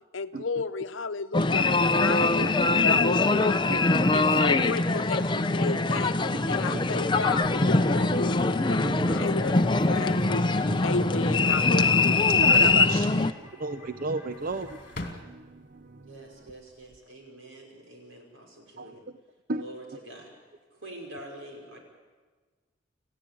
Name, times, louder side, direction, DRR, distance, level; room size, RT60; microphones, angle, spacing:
voice 1, 0.1-1.7 2.0-3.8 4.1-6.1 6.5-8.4 8.7-9.6 9.9-12.2, left 4 dB, 80° left, 11 dB, 0.9 m, -33 dB
sound 1, 1.3-13.3, left 3 dB, 25° left, 0.6 m, -23 dB
sound 2, 2.2-15.1, equal, 10° right, 4.5 m, -51 dB
voice 2, 3.7-4.2 8.8-9.2 10.1-10.4 10.7-10.8 12.3-13.2 13.5-16.1 18.8-18.9 19.5-19.6, right 3 dB, 45° right, 10 dB, 0.7 m, -35 dB
sound 3, 7.3-8.3 8.8-8.9 9.2-11.9 12.2-13.0 14.1-15.9 16.3-17.0, left 2 dB, 45° left, 2.5 m, -45 dB
voice 3, 16.0-19.0 19.6-20.3 20.7-21.8, right 1 dB, 85° right, 1 dB, 5.8 m, -45 dB
28.0 x 15.5 x 8.6 m, 1.4 s
head